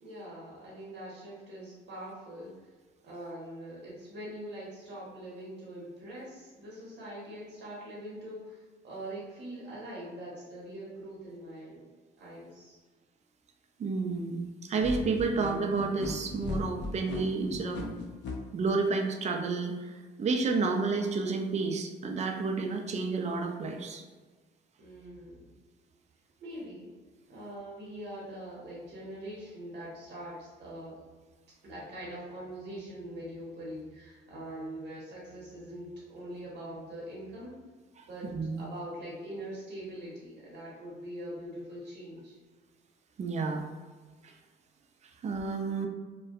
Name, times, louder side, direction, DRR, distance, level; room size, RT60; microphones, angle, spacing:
voice 1, 0.0-2.6 3.0-11.8 12.2-12.8 24.8-25.5 26.4-26.9 27.3-31.0 31.6-37.6 38.1-42.4, right 1 dB, 60° right, -6 dB, 0.8 m, -43 dB
voice 2, 13.8-17.8 18.5-24.0 38.0-38.1 38.3-38.6 43.2-43.6 44.2-44.3 45.2-45.9, right 4 dB, 35° right, 4 dB, 0.4 m, -30 dB
sound 1, 14.8-18.3, left 3 dB, 60° left, 0.5 m, -36 dB
2.5 x 2.1 x 2.3 m, 1.3 s
cardioid pair, 90°, 20 cm